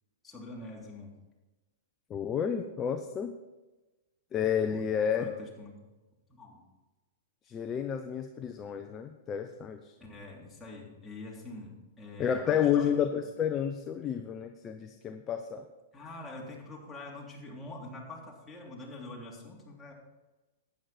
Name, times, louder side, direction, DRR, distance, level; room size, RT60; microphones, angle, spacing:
voice 1, 0.2-1.1 4.7-5.7 6.3-6.6 10.0-12.9 15.9-19.9, left 2 dB, 10° left, -4 dB, 3.3 m, -45 dB
voice 2, 2.1-3.3 4.3-5.3 7.5-9.9 12.2-15.6, left 8 dB, 25° left, 6 dB, 0.8 m, -30 dB
12.5 x 9.4 x 4.4 m, 1.1 s
hypercardioid pair, 115°, 0 cm